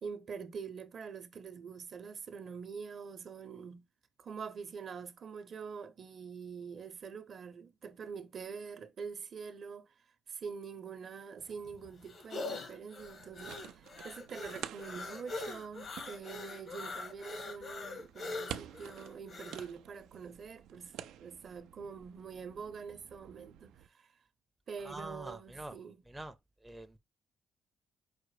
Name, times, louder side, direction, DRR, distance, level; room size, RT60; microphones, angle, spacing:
voice 1, 0.0-3.8 4.2-9.9 10.3-24.1 24.7-26.0, right 6 dB, 55° right, 0.7 m, -45 dB
sound 1, 11.4-19.7, left 3 dB, 50° left, 0.9 m, -43 dB
sound 2, 13.0-23.9, right 11 dB, 85° right, 0.3 m, -50 dB
voice 2, 24.8-25.8 26.1-26.3 26.6-27.0, right 1 dB, 10° right, 0.5 m, -45 dB
5.0 x 2.1 x 4.8 m
cardioid pair, 90°, 0 cm